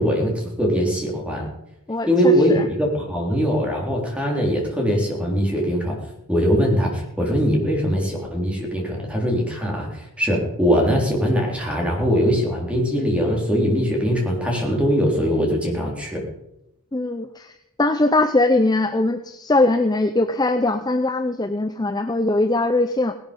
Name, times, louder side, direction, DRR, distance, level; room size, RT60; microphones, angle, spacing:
voice 1, 0.0-1.5 2.1-6.0 6.3-16.2, equal, 5° right, -1 dB, 3.7 m, -21 dB
voice 2, 1.9-2.6 16.9-23.1, left 2 dB, 20° left, 8 dB, 0.6 m, -21 dB
18.0 x 12.0 x 5.3 m, 0.85 s
head